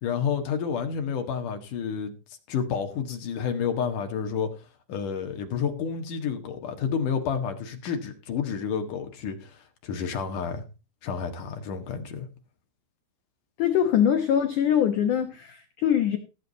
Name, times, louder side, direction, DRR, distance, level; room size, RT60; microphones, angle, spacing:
voice 1, 0.0-2.1 2.5-4.5 4.9-10.6 11.0-12.3, left 7 dB, 55° left, 2.6 m, -30 dB
voice 2, 13.6-16.2, left 9 dB, 75° left, 1.8 m, -23 dB
17.5 x 7.6 x 4.0 m
omnidirectional pair, 5.4 m